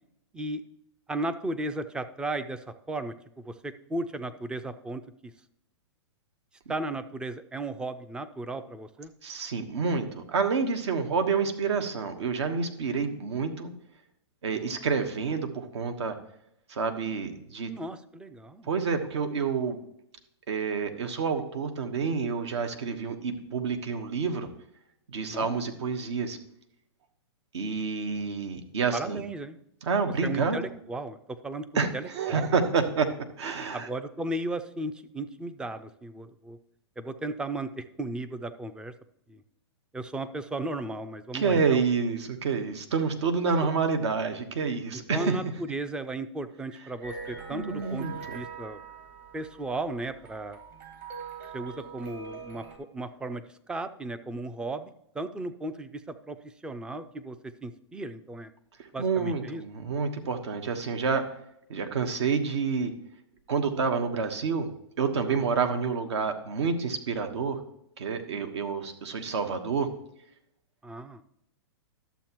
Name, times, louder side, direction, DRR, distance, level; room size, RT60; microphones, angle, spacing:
voice 1, 0.3-0.7 1.1-5.3 6.7-9.1 14.5-14.9 17.7-18.7 25.3-25.6 28.9-29.6 30.2-32.5 33.7-36.6 37.0-38.9 39.3-39.4 39.9-41.8 43.6-43.7 45.1-48.1 48.3-48.8 49.3-50.6 51.5-57.4 57.6-58.5 58.9-59.6 65.3-65.5 70.8-71.2, right 2 dB, 5° right, 11 dB, 0.4 m, -35 dB
voice 2, 9.2-13.7 14.4-16.1 16.7-17.7 18.7-19.8 20.5-24.5 25.1-26.4 27.5-29.2 29.8-30.6 31.7-33.1 33.4-33.9 41.3-45.3 47.5-48.4 59.0-61.2 61.7-62.9 63.5-64.7 65.0-67.6 68.0-69.9, right 5 dB, 70° right, 7 dB, 1.2 m, -28 dB
sound 1, 47.0-52.8, right 5 dB, 40° right, 1.9 m, -43 dB
12.0 x 7.1 x 3.0 m, 0.78 s
hypercardioid pair, 135°, 15 cm